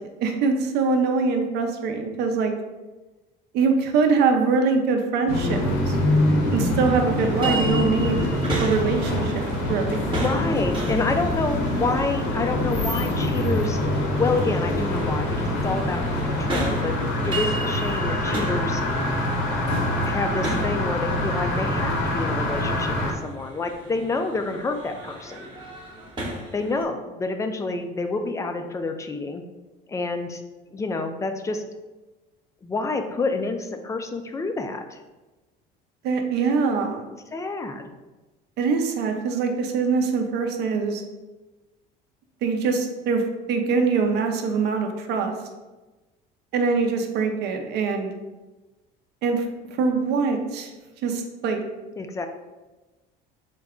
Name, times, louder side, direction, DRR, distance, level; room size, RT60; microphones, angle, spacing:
voice 1, 0.2-2.5 3.5-5.6 5.9-6.0 6.5-8.3 8.6-10.1 36.0-37.0 38.6-41.0 42.4-43.2 43.5-45.3 46.5-48.1 49.2-49.4 49.8-50.7 51.0-51.6, right 4 dB, 65° right, 4 dB, 0.6 m, -23 dB
sound 1, 5.3-23.1, left 1 dB, 75° left, 0.9 m, -25 dB
sound 2, 7.2-26.8, right 1 dB, 25° right, 0.8 m, -35 dB
voice 2, 10.2-13.8 14.2-16.9 17.2-18.8 20.0-25.4 26.5-29.4 29.9-30.4 30.7-31.6 32.6-35.0 37.3-37.9 52.0-52.3, left 3 dB, 15° left, 6 dB, 0.3 m, -28 dB
3.8 x 2.2 x 3.6 m, 1.2 s
cardioid pair, 110°, 19 cm